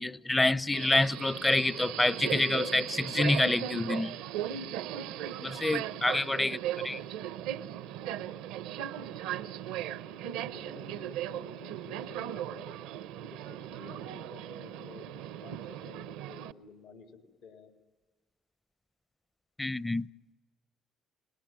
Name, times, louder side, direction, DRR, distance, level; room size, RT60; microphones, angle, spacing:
voice 1, 0.0-4.2 5.4-6.6 6.8-7.0 19.6-20.1, left 2 dB, 15° left, 0.7 m, -27 dB
Subway metro underground, 0.7-16.5, right 11 dB, 80° right, 0.7 m, -38 dB
voice 2, 6.4-6.7 10.5-12.8 13.3-15.1 15.4-17.7, left 4 dB, 75° left, 3.4 m, -52 dB
30.0 x 20.0 x 7.5 m
hypercardioid pair, 60°, 0 cm